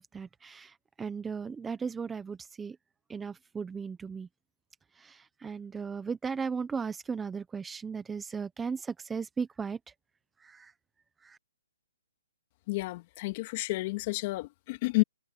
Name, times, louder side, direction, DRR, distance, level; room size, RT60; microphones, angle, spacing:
voice 1, 0.0-2.8 3.1-4.3 4.9-9.8 10.4-10.7 11.2-11.4, right 5 dB, 10° right, 1.1 m, -36 dB
voice 2, 12.7-15.0, left 22 dB, 35° left, 2.5 m, -30 dB
hypercardioid pair, 155°, 0 cm